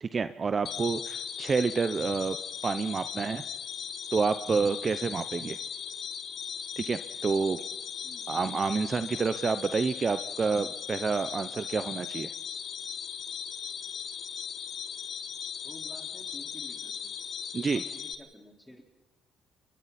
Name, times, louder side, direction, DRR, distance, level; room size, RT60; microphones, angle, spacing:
voice 1, 0.0-2.4 2.6-3.4 4.1-5.6 6.8-7.6 8.3-12.3 17.5-17.8, right 5 dB, 35° right, 11 dB, 0.8 m, -29 dB
sound 1, 0.7-18.2, left 7 dB, 55° left, 1.5 m, -38 dB
voice 2, 15.6-17.1 17.7-18.8, left 1 dB, 5° left, 1 dB, 4.5 m, -50 dB
29.5 x 23.0 x 4.3 m, 1.2 s
cardioid pair, 90°, 0 cm